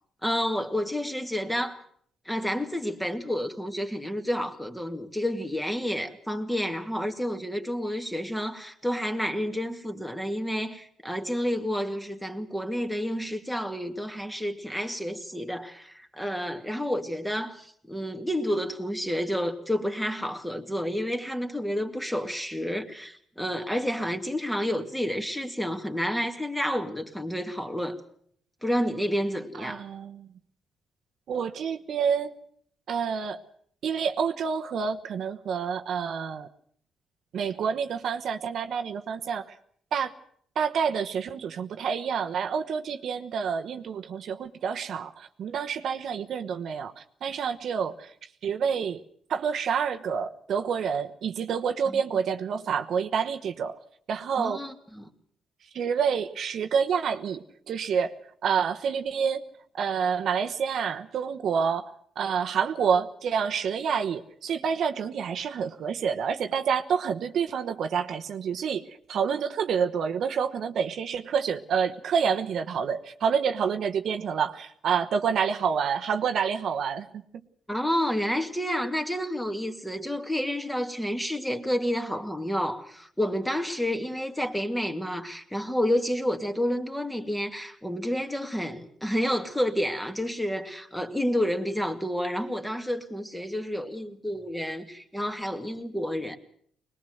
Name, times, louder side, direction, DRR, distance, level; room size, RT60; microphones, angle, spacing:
voice 1, 0.2-1.8 2.3-28.0 28.6-29.8 51.9-52.0 54.4-55.1 77.7-96.4, equal, 5° left, 2.3 m, -30 dB
voice 2, 29.6-30.3 31.3-32.3 32.9-33.4 33.8-36.5 37.3-39.5 39.9-40.1 40.6-48.1 48.4-49.0 49.3-53.8 54.1-54.6 55.7-58.1 58.4-59.4 59.7-77.2, right 7 dB, 65° right, 1.1 m, -28 dB
21.5 x 20.0 x 7.9 m
cardioid pair, 90°, 0 cm